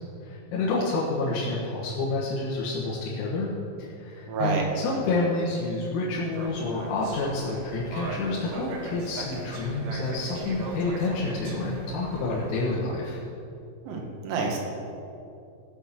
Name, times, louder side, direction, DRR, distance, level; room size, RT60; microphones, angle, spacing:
voice 1, 0.2-3.5 3.8-13.2, left 2 dB, 80° left, -6 dB, 4.1 m, -29 dB
voice 2, 4.3-4.6 13.9-14.6, right 4 dB, 85° right, 0 dB, 4.5 m, -28 dB
sound 1, 6.3-12.8, right 2 dB, 65° right, 3.1 m, -38 dB
15.5 x 6.3 x 7.3 m, 2.7 s
omnidirectional pair, 6.0 m